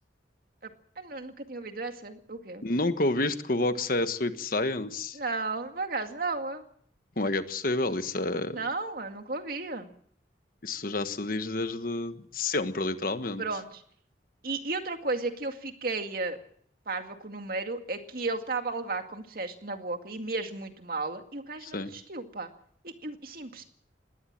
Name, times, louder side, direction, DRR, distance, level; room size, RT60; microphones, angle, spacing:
voice 1, 1.0-2.7 5.1-6.6 8.5-9.9 13.4-13.8 14.4-16.4 16.9-22.5 22.8-23.6, right 3 dB, 55° right, 6 dB, 2.1 m, -34 dB
voice 2, 2.6-5.2 7.2-8.6 10.6-13.4 21.6-21.9, left 2 dB, 50° left, 10 dB, 1.3 m, -29 dB
20.0 x 17.0 x 7.6 m, 0.62 s
head